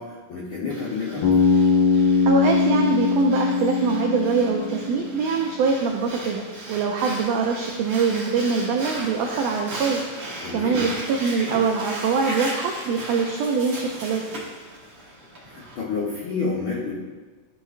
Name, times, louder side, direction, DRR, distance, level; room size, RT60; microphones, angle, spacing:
voice 1, 0.0-1.3 10.4-10.9 15.4-17.0, left 4 dB, 80° left, -5 dB, 1.1 m, -29 dB
Breathing, 0.7-15.7, right 1 dB, 50° right, 1.3 m, -37 dB
Bass guitar, 1.2-5.3, left 4 dB, 50° left, 1.0 m, -21 dB
voice 2, 2.3-10.0 10.5-14.2, right 5 dB, 85° right, 2 dB, 1.5 m, -23 dB
11.0 x 4.9 x 2.4 m, 1.3 s
omnidirectional pair, 3.6 m